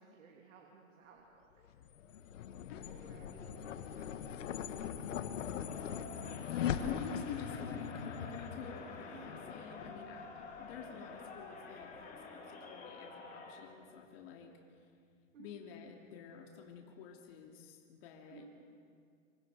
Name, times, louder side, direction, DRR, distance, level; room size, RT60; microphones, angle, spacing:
voice 1, 0.0-1.7 3.0-4.7 9.1-9.3 15.3-15.5 18.3-18.5, right 5 dB, 80° right, 0 dB, 3.2 m, -59 dB
sound 1, 1.6-12.2, left 8 dB, 75° left, 1.6 m, -41 dB
voice 2, 2.7-3.2 6.6-14.5 15.4-18.7, left 7 dB, 50° left, 1 dB, 2.8 m, -49 dB
Crowd, 5.6-13.7, left 3 dB, 20° left, 3.3 m, -50 dB
26.0 x 25.5 x 5.0 m, 2.2 s
hypercardioid pair, 140°, 38 cm